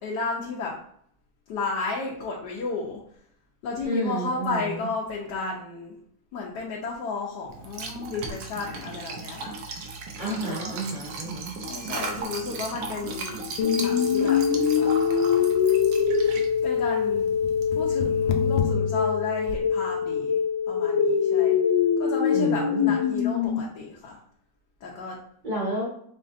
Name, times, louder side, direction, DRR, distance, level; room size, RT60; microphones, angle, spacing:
voice 1, 0.0-0.7 1.5-3.0 3.6-5.9 6.3-9.5 10.3-10.7 11.6-13.5 13.8-14.4 14.8-15.4 16.6-17.3 17.7-20.4 20.7-21.6 22.0-24.2 24.8-25.2, left 3 dB, 70° left, -3 dB, 1.3 m, -33 dB
voice 2, 3.8-4.9 10.2-11.5 22.3-23.0 25.4-25.9, right 1 dB, 35° right, -6 dB, 0.8 m, -31 dB
Liquid, 7.5-18.7, right 3 dB, 70° right, 1.4 m, -37 dB
sound 1, 13.6-23.6, left 7 dB, 90° left, 1.4 m, -23 dB
5.2 x 3.8 x 2.5 m, 0.65 s
omnidirectional pair, 2.1 m